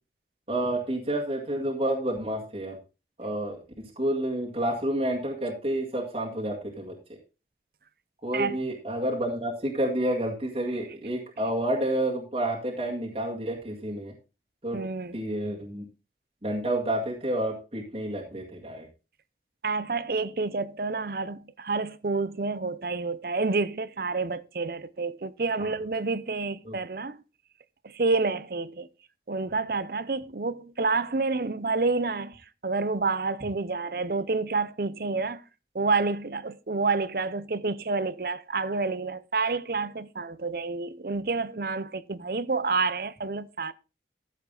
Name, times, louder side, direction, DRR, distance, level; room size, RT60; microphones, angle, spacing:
voice 1, 0.5-2.8 3.2-6.9 8.2-14.1 14.6-14.8 15.1-15.8 16.4-18.9 25.6-25.7 26.7-26.8, right 1 dB, 35° right, 2.0 m, -29 dB
voice 2, 14.7-15.2 19.6-27.2 27.8-28.9 29.3-35.4 35.7-43.7, right 3 dB, 55° right, 0.7 m, -29 dB
13.5 x 7.3 x 3.9 m
head